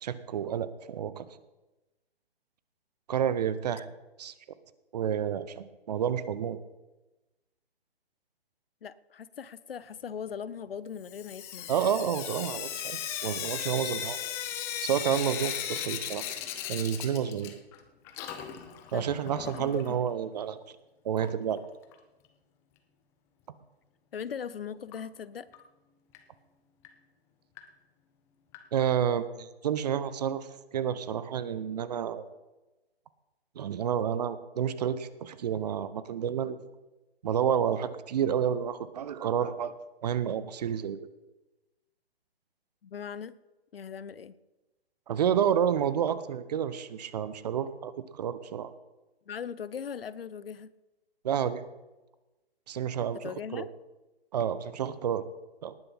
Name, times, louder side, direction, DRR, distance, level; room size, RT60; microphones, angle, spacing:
voice 1, 0.0-1.3 3.1-3.9 4.2-4.3 4.9-6.6 11.7-14.2 14.8-16.2 16.7-17.5 18.9-20.6 21.0-21.6 28.7-32.3 33.6-36.6 37.2-39.7 40.0-41.0 45.1-48.7 51.2-51.6 52.7-53.7 54.3-55.2 55.6-55.8, right 8 dB, 40° right, 15 dB, 0.8 m, -30 dB
voice 2, 8.8-11.7 18.9-19.1 19.5-19.8 24.1-25.5 42.8-43.3 43.7-44.3 49.3-50.7 53.2-53.7, left 7 dB, 65° left, 17 dB, 0.7 m, -39 dB
Sink (filling or washing) / Drip, 11.0-17.8 18.0-20.0 21.2-21.3 21.6-21.7 21.9-22.0 24.9-25.0 25.5-25.6 26.1-26.2 26.8-26.9 27.6-27.7 28.5-28.6, left 10 dB, 10° left, 0.5 m, -37 dB
18.5 x 6.8 x 5.8 m, 1.1 s
figure-of-eight pair, 135°, 31 cm